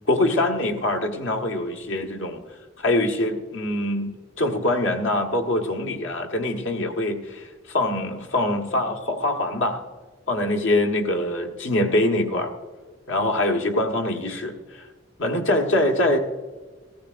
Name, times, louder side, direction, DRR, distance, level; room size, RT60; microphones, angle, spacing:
voice 1, 0.1-2.4 2.8-9.8 10.3-12.5 13.1-14.9 15.2-16.2, left 1 dB, 85° left, 2 dB, 1.4 m, -24 dB
16.0 x 15.0 x 2.5 m, 1.4 s
head